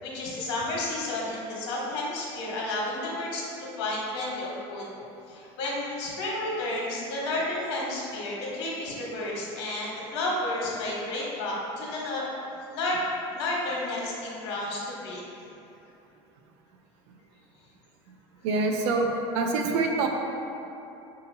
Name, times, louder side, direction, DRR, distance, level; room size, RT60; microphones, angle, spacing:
voice 1, 0.0-4.9 5.3-12.3 12.7-13.0 13.3-15.2, left 2 dB, 85° left, -4 dB, 1.2 m, -31 dB
voice 2, 18.4-20.1, right 3 dB, 80° right, 2 dB, 0.6 m, -26 dB
6.5 x 2.8 x 2.7 m, 2.9 s
supercardioid pair, 120°, 14 cm